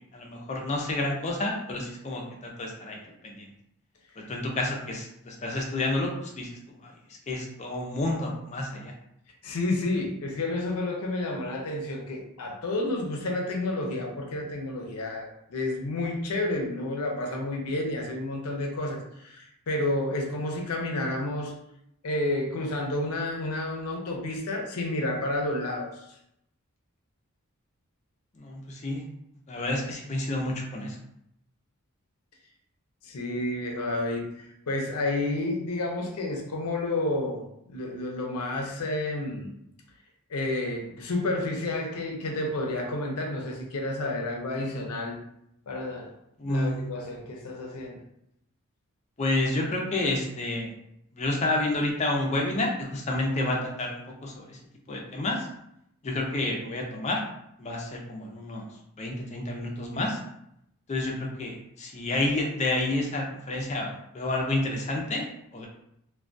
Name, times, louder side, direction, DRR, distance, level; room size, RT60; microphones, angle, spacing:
voice 1, 0.1-3.0 3.2-3.5 4.3-6.5 6.8-6.9 7.3-8.9 28.4-29.0 29.5-31.0 46.4-46.9 49.2-50.7 51.1-54.6 54.9-55.5 56.0-57.2 57.6-58.6 59.0-60.2 60.9-65.7, left 2 dB, 30° left, 0 dB, 0.4 m, -29 dB
voice 2, 9.4-21.5 22.0-26.0 33.0-39.5 40.3-45.2 45.7-46.1 46.4-48.0, left 2 dB, 90° left, 1 dB, 0.5 m, -30 dB
2.2 x 2.2 x 2.5 m, 0.78 s
head